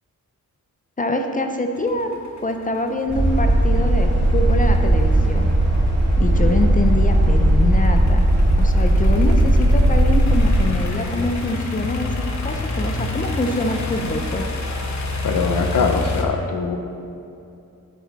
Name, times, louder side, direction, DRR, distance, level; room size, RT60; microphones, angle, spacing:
voice 1, 1.0-5.5 6.2-8.2 8.6-14.5, left 2 dB, 25° left, 5 dB, 0.5 m, -25 dB
sound 1, 1.8-16.2, left 2 dB, 60° left, 1.0 m, -28 dB
sound 2, 3.1-10.6, right 1 dB, 35° right, 2.2 m, -17 dB
voice 2, 15.2-16.8, left 4 dB, 80° left, 5 dB, 0.8 m, -22 dB
9.5 x 7.7 x 4.1 m, 2.7 s
wide cardioid pair, 170°, 32 cm